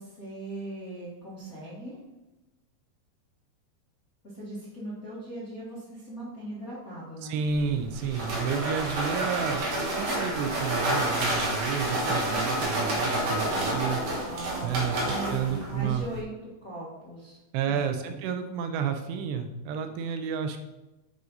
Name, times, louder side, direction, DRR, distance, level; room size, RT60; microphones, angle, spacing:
voice 1, 0.0-2.0 4.3-7.4 14.2-16.3 16.6-17.4 17.7-18.1, right 1 dB, 45° left, -8 dB, 1.0 m, -39 dB
voice 2, 7.2-14.0 14.6-15.0 15.3-16.1 17.5-20.6, right 6 dB, 90° right, 6 dB, 3.0 m, -31 dB
sound 1, 7.5-16.2, right 1 dB, 55° right, 1.9 m, -29 dB
9.7 x 5.2 x 4.1 m, 1.0 s
omnidirectional pair, 4.8 m